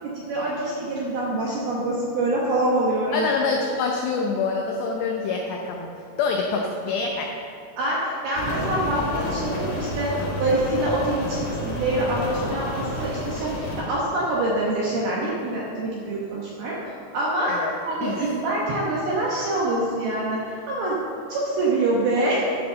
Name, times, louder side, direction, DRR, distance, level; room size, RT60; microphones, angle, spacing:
voice 1, 0.0-3.3 7.8-10.1 10.4-16.8 17.1-17.5 17.9-21.0 21.3-22.5, right 2 dB, 75° right, -5 dB, 2.3 m, -25 dB
voice 2, 3.1-7.3 17.5-17.7 18.0-18.3, left 4 dB, 90° left, 1 dB, 2.4 m, -26 dB
Rain, 8.3-13.8, left 1 dB, 60° left, 2.0 m, -30 dB
11.0 x 5.5 x 6.7 m, 2.5 s
omnidirectional pair, 6.0 m